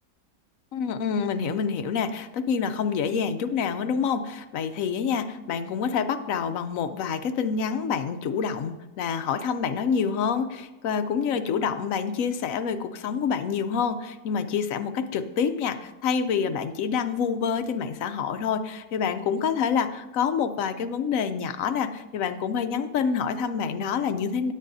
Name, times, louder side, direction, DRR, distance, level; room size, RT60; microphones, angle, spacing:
voice 1, 0.7-24.5, left 6 dB, 70° left, 9 dB, 1.0 m, -27 dB
17.0 x 8.3 x 2.7 m, 1.1 s
omnidirectional pair, 1.6 m